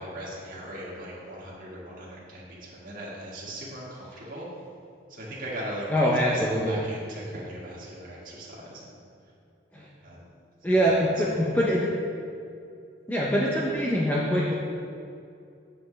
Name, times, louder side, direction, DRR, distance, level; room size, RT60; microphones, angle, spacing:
voice 1, 0.0-4.5 5.1-9.0 10.0-10.2 10.7-11.9, right 1 dB, 45° right, -6 dB, 1.8 m, -39 dB
voice 2, 5.9-6.8 9.7-9.9 10.6-11.9 13.1-14.5, equal, 10° left, -5 dB, 0.6 m, -24 dB
7.6 x 7.4 x 3.3 m, 2.5 s
head